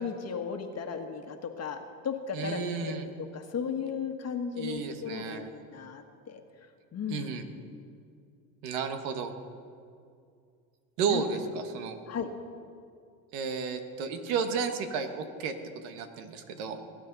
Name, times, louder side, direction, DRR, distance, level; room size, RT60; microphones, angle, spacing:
voice 1, 0.0-6.4 6.9-7.3 11.1-11.2 12.1-12.3, left 6 dB, 35° left, 5 dB, 1.4 m, -35 dB
voice 2, 2.3-3.0 4.5-5.5 7.1-7.5 8.6-9.3 11.0-12.0 13.3-16.8, right 5 dB, 85° right, 7 dB, 1.5 m, -33 dB
21.0 x 10.5 x 4.1 m, 2.3 s
supercardioid pair, 105°, 42 cm